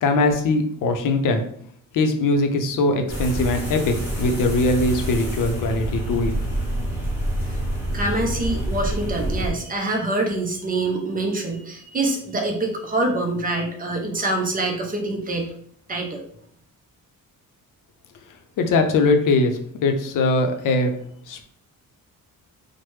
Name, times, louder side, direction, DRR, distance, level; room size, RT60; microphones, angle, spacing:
voice 1, 0.0-1.4 1.9-6.3 18.6-20.9 21.3-21.4, left 2 dB, 65° left, 5 dB, 0.5 m, -21 dB
sound 1, 3.1-9.5, right 1 dB, 5° right, 1.1 m, -27 dB
voice 2, 7.5-15.5 15.9-16.2, right 2 dB, 25° right, 1 dB, 0.5 m, -25 dB
3.2 x 2.1 x 3.1 m, 0.63 s
wide cardioid pair, 160°, 34 cm